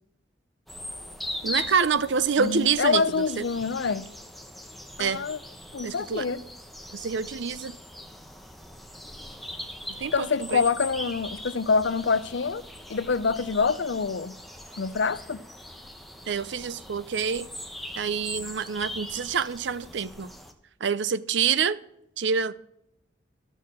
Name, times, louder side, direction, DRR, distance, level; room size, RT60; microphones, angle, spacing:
sound 1, 0.7-20.5, left 1 dB, ahead, 0.8 m, -41 dB
voice 1, 1.4-3.4 5.0-5.2 5.8-6.2 6.9-7.8 10.0-10.6 16.3-17.5 18.0-20.3 20.8-21.8 22.2-22.5, right 6 dB, 75° right, 0.6 m, -27 dB
voice 2, 2.4-4.1 5.0-5.4 5.7-6.4 10.1-12.6 12.9-14.4 14.8-15.4, left 5 dB, 75° left, 0.5 m, -26 dB
13.0 x 6.3 x 7.3 m
head